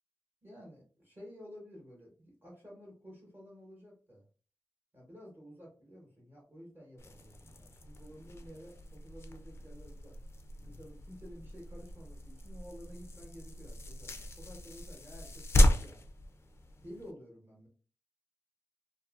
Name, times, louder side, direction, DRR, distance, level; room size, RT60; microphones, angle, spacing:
voice 1, 0.4-4.2 4.9-10.1 10.6-16.0 16.8-17.7, equal, 25° right, -3 dB, 1.1 m, -52 dB
sound 1, 7.0-17.1, left 1 dB, 35° left, 0.4 m, -34 dB
2.7 x 2.7 x 2.4 m, 0.40 s
wide cardioid pair, 145°, 8 cm